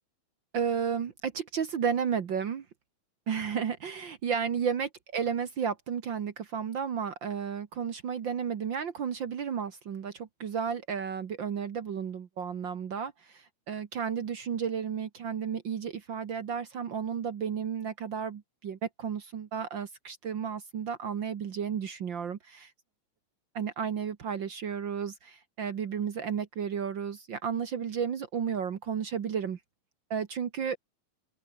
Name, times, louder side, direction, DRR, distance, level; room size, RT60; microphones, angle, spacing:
voice 1, 0.5-2.6 3.3-22.7 23.5-29.6 30.1-30.8, right 7 dB, 65° right, 1.1 m, -33 dB
open air
omnidirectional pair, 4.2 m